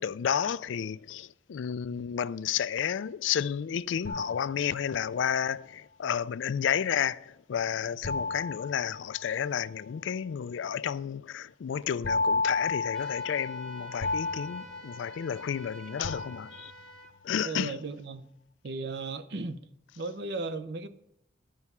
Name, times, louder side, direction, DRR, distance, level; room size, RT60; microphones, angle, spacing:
voice 1, 0.0-16.7 17.2-17.7, left 8 dB, 70° left, 0.3 m, -31 dB
sound 1, 4.0-5.3 8.0-9.7 12.0-15.6 16.0-17.0, left 3 dB, 50° left, 0.8 m, -33 dB
sound 2, 12.9-17.1, right 2 dB, 5° left, 0.9 m, -49 dB
voice 2, 17.4-18.3 18.6-19.7 20.0-20.9, right 3 dB, 55° right, 0.6 m, -36 dB
11.5 x 5.5 x 5.9 m
head